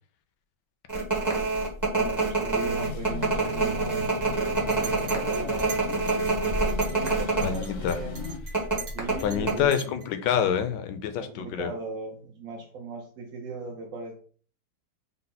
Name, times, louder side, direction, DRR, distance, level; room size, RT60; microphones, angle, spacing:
sound 1, 0.9-7.5 7.8-8.0 8.5-9.6, right 3 dB, 20° right, 0.5 m, -26 dB
voice 1, 1.9-5.8 6.9-8.3 8.7-9.7 11.2-14.2, right 3 dB, 65° right, 0 dB, 0.8 m, -38 dB
sound 2, 2.8-8.4, left 4 dB, 60° left, 0.8 m, -38 dB
Chink clink, 4.5-7.2 7.4-10.1, right 6 dB, 90° right, 2.2 m, -42 dB
voice 2, 7.4-8.0 9.2-11.7, left 8 dB, 75° left, 9 dB, 1.1 m, -27 dB
5.3 x 2.0 x 4.0 m, 0.43 s
omnidirectional pair, 2.1 m